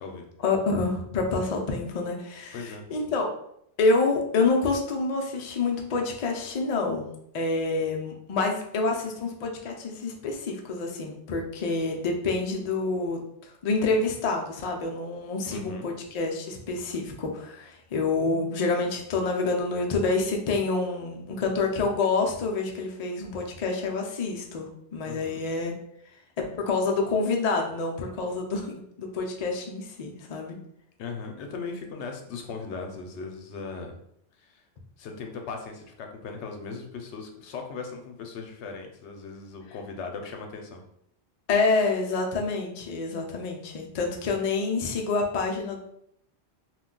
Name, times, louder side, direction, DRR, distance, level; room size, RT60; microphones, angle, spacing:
voice 1, 0.4-3.3 3.8-13.2 13.6-25.7 26.4-30.6 41.5-45.8, left 3 dB, 55° left, 1 dB, 0.4 m, -27 dB
voice 2, 2.5-2.9 15.5-15.9 25.0-25.4 31.0-34.0 34.4-34.6 35.0-40.8, left 4 dB, 75° left, 3 dB, 0.9 m, -38 dB
2.3 x 2.2 x 3.7 m, 0.72 s
omnidirectional pair, 1.2 m